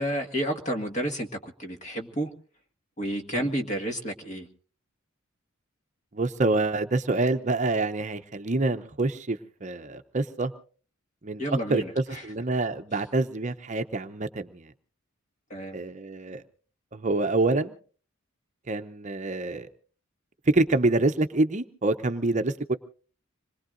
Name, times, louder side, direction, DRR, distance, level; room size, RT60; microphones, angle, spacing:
voice 1, 0.0-2.3 3.0-4.5 11.4-12.2 15.5-15.8, right 1 dB, 35° left, 5 dB, 1.7 m, -31 dB
voice 2, 6.1-10.5 11.2-11.4 11.7-14.7 15.7-16.4 16.9-17.8 18.7-19.7 20.5-22.7, right 2 dB, 35° right, 8 dB, 0.7 m, -26 dB
26.5 x 21.0 x 2.6 m, 0.41 s
head